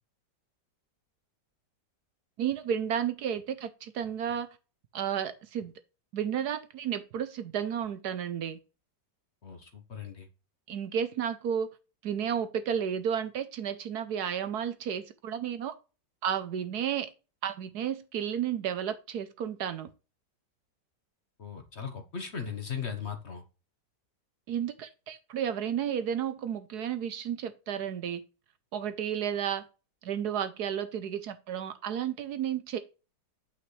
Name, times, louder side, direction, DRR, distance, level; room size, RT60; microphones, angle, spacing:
voice 1, 2.4-4.6 4.9-5.7 6.1-8.6 10.7-11.7 12.0-15.7 16.2-17.1 17.4-19.9 24.5-28.2 28.7-29.6 30.0-32.8, right 8 dB, 65° right, 1.2 m, -32 dB
voice 2, 9.4-10.3 21.4-23.4, left 6 dB, 45° left, 1.2 m, -38 dB
8.7 x 5.7 x 3.2 m
omnidirectional pair, 1.9 m